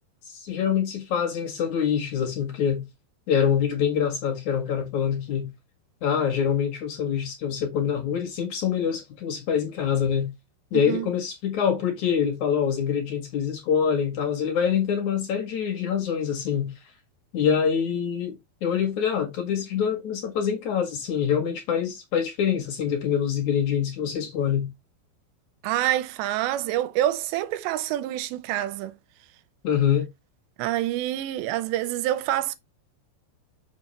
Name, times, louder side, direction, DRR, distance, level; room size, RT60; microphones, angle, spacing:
voice 1, 0.2-2.8 3.3-5.5 6.0-10.3 10.7-16.7 17.3-24.7 29.6-30.1, left 8 dB, 50° left, 2.8 m, -25 dB
voice 2, 10.7-11.1 25.6-29.0 30.6-32.6, right 13 dB, 85° right, 3.0 m, -27 dB
7.4 x 6.1 x 3.2 m
omnidirectional pair, 4.9 m